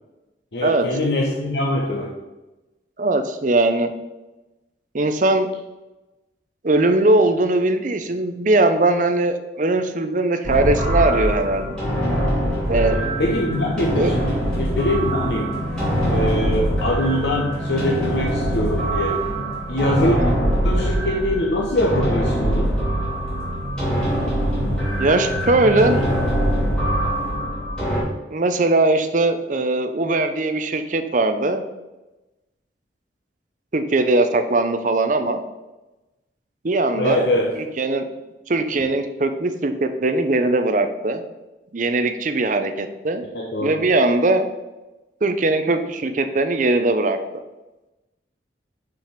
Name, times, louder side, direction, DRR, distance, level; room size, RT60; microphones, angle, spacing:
voice 1, 0.5-2.1 12.9-15.5 16.1-19.3 19.7-20.2 20.6-22.8 36.9-37.6 43.3-43.8, left 1 dB, 70° left, -1 dB, 0.9 m, -23 dB
voice 2, 3.0-3.9 4.9-5.5 6.6-11.7 12.7-13.1 13.9-14.2 20.0-20.3 25.0-26.0 28.3-31.6 33.7-35.4 36.6-37.3 37.6-38.1 38.5-41.2 41.7-43.3 43.6-44.5 45.2-47.2, right 2 dB, 45° right, 8 dB, 0.6 m, -20 dB
sound 1, 10.4-28.0, equal, 5° left, 2.7 m, -23 dB
5.9 x 5.1 x 5.8 m, 1.1 s
head